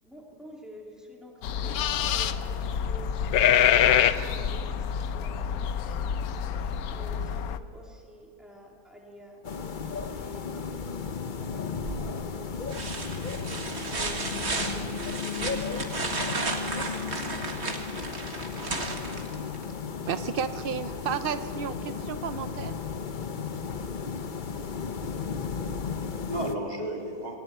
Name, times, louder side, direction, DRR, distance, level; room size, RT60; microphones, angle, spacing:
voice 1, 0.0-5.6 6.3-9.4 9.9-10.5 11.4-12.5 13.7-14.4 14.7-15.7, right 1 dB, ahead, -2 dB, 3.2 m, -49 dB
sound 1, 1.4-7.6, left 9 dB, 65° left, 1.1 m, -26 dB
sound 2, 9.4-26.6, left 5 dB, 45° left, 0.7 m, -34 dB
sound 3, 11.8-12.2 12.7-19.6 21.4-21.5, right 3 dB, 40° right, 2.1 m, -34 dB
voice 2, 20.1-22.7, right 7 dB, 85° right, 11 dB, 0.4 m, -32 dB
voice 3, 25.0-27.4, right 1 dB, 25° right, 0 dB, 3.0 m, -36 dB
19.5 x 17.5 x 9.1 m, 2.4 s
omnidirectional pair, 1.8 m